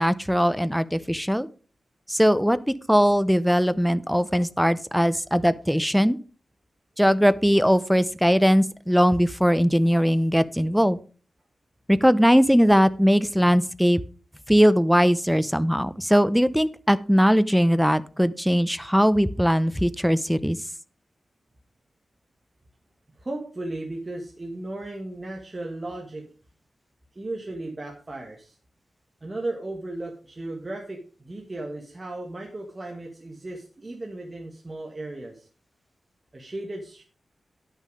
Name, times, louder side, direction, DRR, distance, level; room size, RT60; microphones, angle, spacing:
voice 1, 0.0-1.5 2.1-6.2 7.0-11.0 11.9-14.0 14.5-20.6, equal, ahead, 15 dB, 0.6 m, -20 dB
voice 2, 23.1-26.3 27.1-28.6 29.2-35.5 36.3-37.0, right 2 dB, 30° right, 0 dB, 1.7 m, -35 dB
10.5 x 6.5 x 5.1 m, 0.38 s
wide cardioid pair, 110°, 0 cm